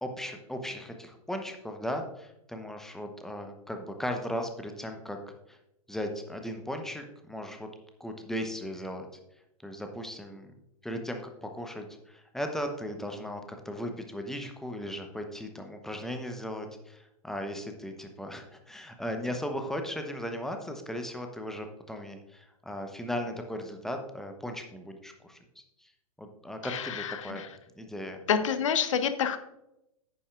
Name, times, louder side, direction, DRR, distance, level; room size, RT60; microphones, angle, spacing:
voice 1, 0.0-5.2 5.5-5.6 5.9-7.7 8.0-9.1 9.6-10.5 10.8-25.9 26.2-27.4 27.7-28.2, equal, ahead, 4 dB, 1.0 m, -37 dB
voice 2, 26.6-27.5 28.3-29.4, left 7 dB, 60° left, 10 dB, 1.0 m, -28 dB
10.0 x 9.5 x 2.5 m, 0.85 s
figure-of-eight pair, 105°, 19 cm